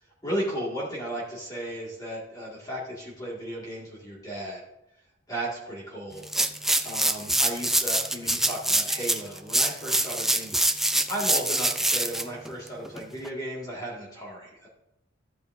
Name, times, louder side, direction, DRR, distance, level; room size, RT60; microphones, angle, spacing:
voice 1, 0.2-4.6 5.3-6.3 6.8-14.7, right 1 dB, 20° left, -5 dB, 1.9 m, -35 dB
sound 1, 6.2-13.3, right 1 dB, ahead, 0.4 m, -25 dB
14.0 x 8.4 x 2.6 m, 0.88 s
head